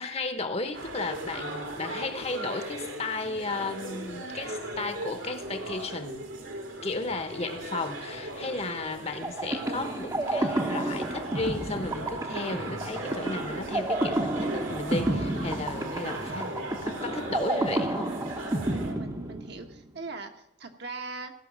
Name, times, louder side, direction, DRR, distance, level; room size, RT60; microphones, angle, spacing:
voice 1, 0.0-6.3 6.8-18.1, left 3 dB, 30° left, 8 dB, 1.1 m, -34 dB
sound 1, 0.7-18.9, right 1 dB, 75° right, 2.3 m, -38 dB
sound 2, 9.2-19.9, right 1 dB, 20° right, 0.9 m, -31 dB
voice 2, 18.9-21.3, right 3 dB, 55° right, 4 dB, 1.3 m, -40 dB
15.5 x 6.0 x 7.4 m, 0.83 s
head